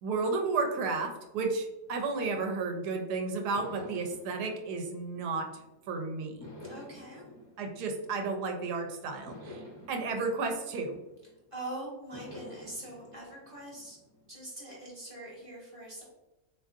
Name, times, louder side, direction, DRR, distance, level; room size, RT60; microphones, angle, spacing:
voice 1, 0.0-5.5 5.9-6.5 7.6-11.0, right 4 dB, 80° right, 3 dB, 1.1 m, -32 dB
sound 1, 1.8-3.0 3.5-5.8 6.4-8.7 9.3-11.5 12.1-14.3, left 1 dB, 30° left, 0.3 m, -50 dB
voice 2, 6.7-7.3 11.5-14.0 14.3-16.0, right 1 dB, 30° right, -5 dB, 0.7 m, -43 dB
3.5 x 2.8 x 2.4 m, 1.0 s
omnidirectional pair, 1.7 m